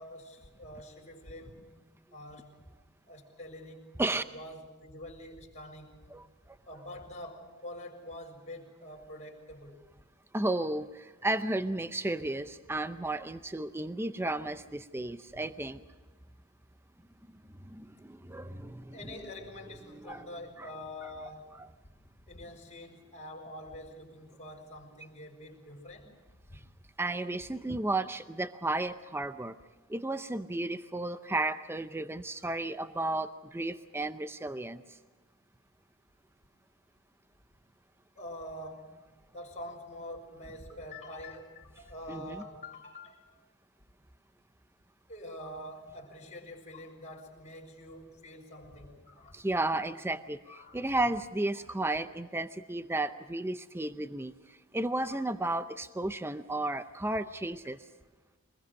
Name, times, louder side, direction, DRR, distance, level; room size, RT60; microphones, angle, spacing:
voice 1, 0.0-1.7 2.1-2.6 3.1-6.1 6.7-9.8 18.9-21.5 21.8-21.9 22.3-26.1 26.5-26.7 38.2-39.0 39.3-43.3 45.1-49.4 50.5-51.0 51.6-51.7 52.0-52.4 55.1-55.3 57.4-57.6, left 1 dB, 35° left, 0 dB, 5.2 m, -46 dB
voice 2, 10.3-15.8 17.6-19.1 19.9-20.3 20.6-20.7 27.0-29.5 29.9-34.8 42.1-42.4 49.3-57.8, right 2 dB, 10° right, 11 dB, 0.6 m, -33 dB
24.5 x 21.0 x 6.4 m, 1.3 s
head